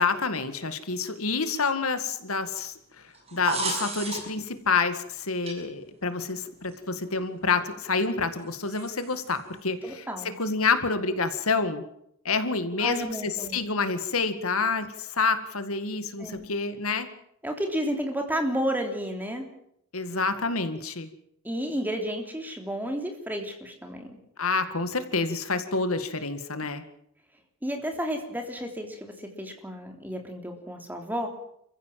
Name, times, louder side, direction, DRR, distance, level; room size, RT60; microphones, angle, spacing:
voice 1, 0.0-3.1 3.3-10.1 10.4-11.8 12.2-17.1 19.9-21.1 24.4-26.8, left 4 dB, 80° left, 10 dB, 2.1 m, -28 dB
sound 1, 3.1-4.5 5.5-5.6 6.7-6.8 8.7-9.3, right 3 dB, 30° right, 6.9 m, -32 dB
voice 2, 9.8-10.3 12.8-13.7 16.2-16.5 17.4-19.5 21.4-24.2 27.6-31.3, equal, 10° right, 3 dB, 3.4 m, -32 dB
28.5 x 15.5 x 7.7 m, 0.73 s
head